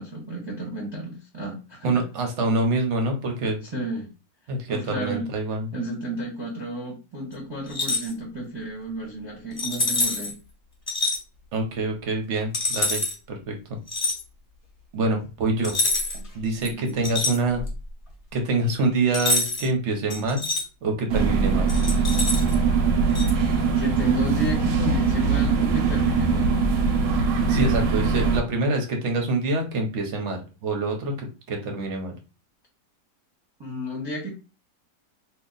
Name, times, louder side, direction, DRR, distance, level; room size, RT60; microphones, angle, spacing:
voice 1, 0.0-2.0 3.6-4.1 4.7-5.3 5.7-10.3 16.6-16.9 23.7-26.6 33.6-34.3, right 1 dB, 20° right, -2 dB, 0.8 m, -32 dB
voice 2, 1.8-3.6 4.5-5.7 11.5-13.0 13.3-13.6 14.9-15.7 16.3-17.6 18.3-20.4 20.8-21.7 27.5-32.1, right 2 dB, 55° right, 3 dB, 0.9 m, -26 dB
sound 1, 7.7-8.1 9.6-10.3 10.9-11.2 12.5-13.1 13.9-14.2 15.6-16.3 16.6-17.8 19.1-19.7 20.1-20.6 21.7-22.5 23.1-23.3, left 2 dB, 30° left, 0.7 m, -26 dB
sound 2, 21.1-28.4, right 4 dB, 85° right, 1.3 m, -22 dB
2.9 x 2.3 x 3.9 m, 0.31 s
omnidirectional pair, 1.9 m